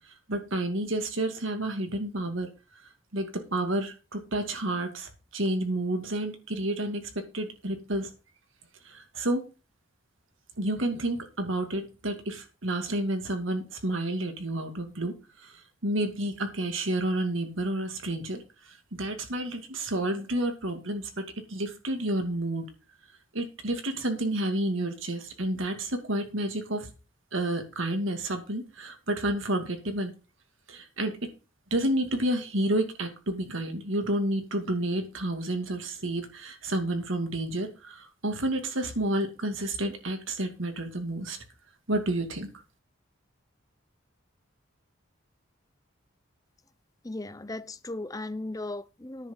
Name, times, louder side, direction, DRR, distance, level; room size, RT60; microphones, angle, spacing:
voice 1, 0.3-2.5 3.1-7.0 7.3-8.1 8.8-9.4 10.6-18.4 18.7-22.7 23.3-26.9 27.3-30.1 30.7-31.3 31.7-41.4 41.9-42.5, right 1 dB, 75° right, 2.4 m, -30 dB
voice 2, 47.0-49.3, left 2 dB, 15° left, 0.5 m, -37 dB
10.0 x 5.9 x 7.2 m
head